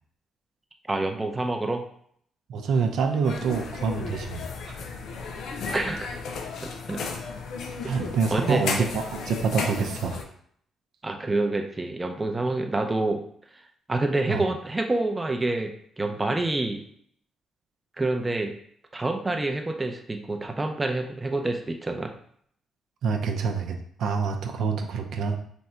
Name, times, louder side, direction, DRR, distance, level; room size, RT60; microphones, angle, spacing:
voice 1, 0.9-1.8 5.7-6.0 6.9-7.0 8.3-8.6 11.0-13.2 13.9-15.7 16.0-16.8 18.0-18.5 18.9-22.1, right 2 dB, 15° right, 3 dB, 0.5 m, -27 dB
voice 2, 2.5-4.8 7.9-10.2 14.3-14.4 23.0-25.4, right 5 dB, 75° right, 4 dB, 0.5 m, -26 dB
sound 1, 3.2-10.2, left 4 dB, 75° left, 0.5 m, -34 dB
3.4 x 2.7 x 4.3 m, 0.64 s
cardioid pair, 90°, 0 cm